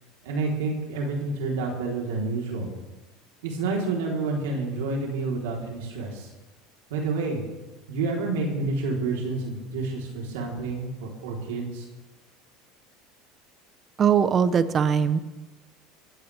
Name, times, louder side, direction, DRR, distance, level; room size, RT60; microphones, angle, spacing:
voice 1, 0.2-2.7 3.4-6.3 6.9-7.4 7.9-11.9, right 3 dB, 90° right, -1 dB, 4.0 m, -29 dB
voice 2, 14.0-15.2, right 7 dB, 30° right, 12 dB, 1.1 m, -21 dB
23.0 x 15.5 x 3.6 m, 1.1 s
supercardioid pair, 120°, 0 cm